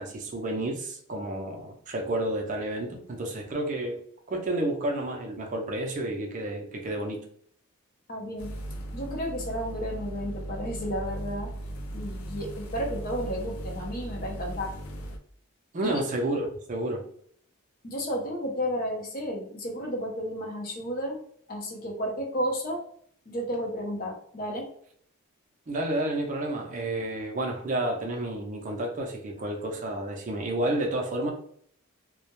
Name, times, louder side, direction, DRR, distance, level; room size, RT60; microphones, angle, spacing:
voice 1, 0.0-4.0 4.3-7.2 15.7-17.1 25.7-31.3, right 1 dB, 35° right, 0.4 m, -30 dB
voice 2, 8.1-8.5 8.9-11.5 11.9-14.7 15.8-16.0 17.8-21.2 21.5-22.8 23.3-24.7, equal, 40° left, 0.6 m, -32 dB
sound 1, 8.4-15.2, right 1 dB, 85° left, 0.5 m, -37 dB
2.2 x 2.0 x 2.9 m
head